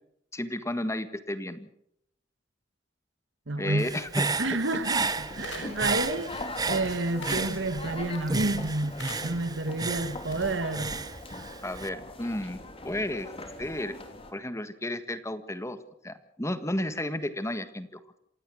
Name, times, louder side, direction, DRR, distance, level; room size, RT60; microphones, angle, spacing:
voice 1, 0.3-1.7 3.6-4.3 11.6-13.3 13.6-14.0 14.3-15.8 16.0-18.2, left 1 dB, 15° left, 1.6 m, -33 dB
voice 2, 3.5-3.9 4.4-11.0, right 2 dB, 85° right, 1.5 m, -30 dB
Human voice / Breathing, 3.8-8.0 8.3-11.9, right 4 dB, 20° right, 0.9 m, -32 dB
sound 1, 4.9-14.3, left 2 dB, 30° left, 3.3 m, -41 dB
sound 2, 5.1-10.8, left 3 dB, 80° left, 6.1 m, -48 dB
27.5 x 16.5 x 6.3 m
head